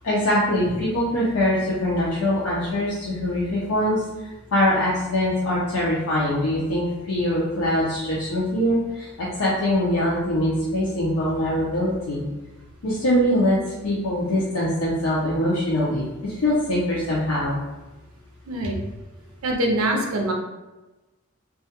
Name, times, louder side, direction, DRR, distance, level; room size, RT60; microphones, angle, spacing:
voice 1, 0.0-4.0 4.5-12.2 12.8-13.6 13.8-17.6, left 1 dB, 85° left, -7 dB, 0.5 m, -23 dB
voice 2, 18.5-18.8 19.4-20.3, right 1 dB, 85° right, 2 dB, 0.5 m, -23 dB
2.3 x 2.2 x 2.8 m, 1.1 s
head